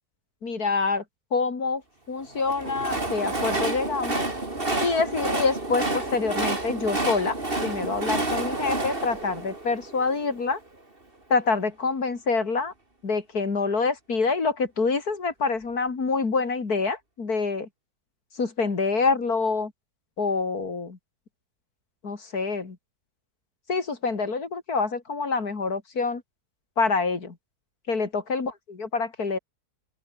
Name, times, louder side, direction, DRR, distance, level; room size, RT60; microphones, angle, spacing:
voice 1, 0.4-1.0 1.3-1.8 2.1-4.3 4.8-10.6 11.3-12.7 13.0-17.7 18.4-19.7 20.2-21.0 22.0-22.8 23.7-26.2 26.8-27.3 27.9-28.5 28.8-29.4, left 4 dB, 75° left, 3.3 m, -26 dB
Train, 2.3-10.5, right 2 dB, 35° right, 4.1 m, -29 dB
open air
omnidirectional pair, 1.6 m